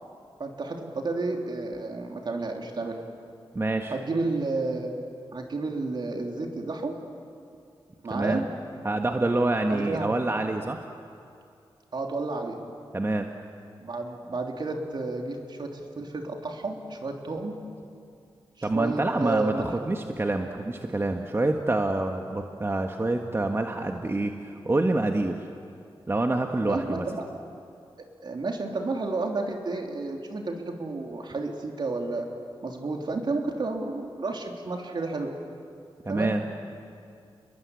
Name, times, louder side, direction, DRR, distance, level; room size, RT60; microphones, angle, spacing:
voice 1, 0.4-3.0 3.9-7.0 8.0-8.5 9.7-10.1 11.9-12.6 13.8-17.6 18.6-19.7 26.6-27.3 28.0-32.3 32.6-35.3 36.1-36.4, right 3 dB, 55° right, 2 dB, 3.4 m, -31 dB
voice 2, 3.5-3.9 8.1-8.4 8.8-10.8 12.9-13.3 18.6-25.5 26.1-27.0 36.0-36.4, right 2 dB, 25° right, 3 dB, 1.4 m, -27 dB
29.5 x 21.5 x 8.4 m, 2.4 s
wide cardioid pair, 80°, 9 cm